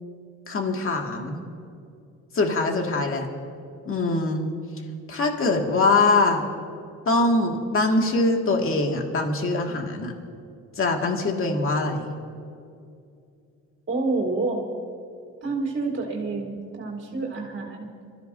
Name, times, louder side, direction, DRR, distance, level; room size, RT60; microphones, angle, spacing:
voice 1, 0.5-1.3 2.3-3.3 3.9-4.5 5.1-6.4 7.1-10.1 10.8-12.1, left 3 dB, 45° left, 2 dB, 2.1 m, -23 dB
voice 2, 1.1-1.5 13.9-14.6 15.4-17.9, right 3 dB, 40° right, -5 dB, 3.3 m, -28 dB
26.5 x 14.0 x 2.7 m, 2.4 s
cardioid pair, 90°, 30 cm